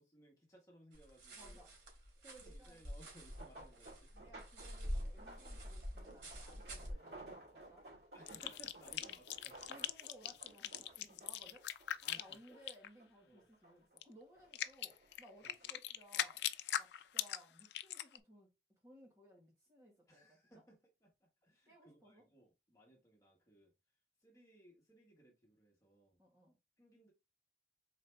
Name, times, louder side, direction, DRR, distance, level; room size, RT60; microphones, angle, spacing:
voice 1, 0.0-1.6 2.2-4.1 8.1-9.8 12.0-12.6 13.2-13.5 15.4-15.7 16.1-16.3 20.1-23.7 24.2-26.2 26.8-27.1, right 1 dB, 20° left, 1.6 m, -63 dB
sound 1, 0.9-6.9, equal, 85° right, 2.3 m, -47 dB
voice 2, 1.3-1.7 2.4-2.7 4.1-7.8 9.0-9.1 9.7-11.6 12.2-16.4 16.8-18.5 18.8-20.4 21.7-22.2 26.2-26.6, equal, 20° right, 1.5 m, -61 dB
sound 2, 3.1-12.6 13.0-13.9 14.3-15.7 16.4-16.7 17.1-17.2, right 2 dB, 65° right, 2.5 m, -57 dB
sound 3, 8.3-12.9 14.0-14.1 14.5-18.2, left 10 dB, 70° left, 0.4 m, -40 dB
4.3 x 3.1 x 3.3 m
head